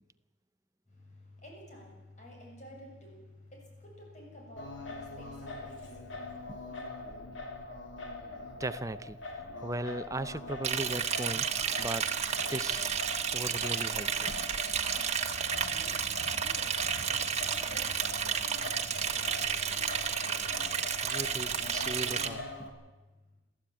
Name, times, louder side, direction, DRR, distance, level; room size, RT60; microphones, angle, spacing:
voice 1, 0.9-6.4 15.1-22.0 22.7-23.3, left 1 dB, 40° left, 0 dB, 7.5 m, -52 dB
Singing, 4.6-22.7, left 2 dB, 85° left, 3.4 m, -42 dB
voice 2, 8.6-9.2 9.6-11.5 11.8-12.1 12.5-12.9 13.3-14.3 21.0-22.7, right 2 dB, 15° right, 13 dB, 0.7 m, -37 dB
Liquid, 10.6-22.3, right 7 dB, 35° right, 1.5 m, -32 dB
22.0 x 14.5 x 8.9 m, 1.1 s
head